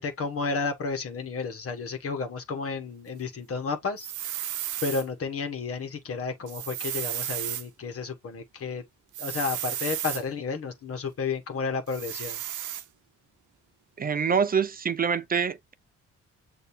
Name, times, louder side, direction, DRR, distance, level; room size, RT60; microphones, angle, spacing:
voice 1, 0.0-4.1 4.4-4.5 4.8-8.8 9.2-12.4, left 4 dB, 50° left, 1.4 m, -32 dB
sound 1, 4.0-5.0 6.5-7.6 9.1-10.2 11.9-12.8, right 12 dB, 75° right, 0.8 m, -33 dB
voice 2, 14.0-15.7, right 6 dB, 30° right, 0.5 m, -25 dB
6.6 x 2.8 x 2.7 m
cardioid pair, 90°, 30 cm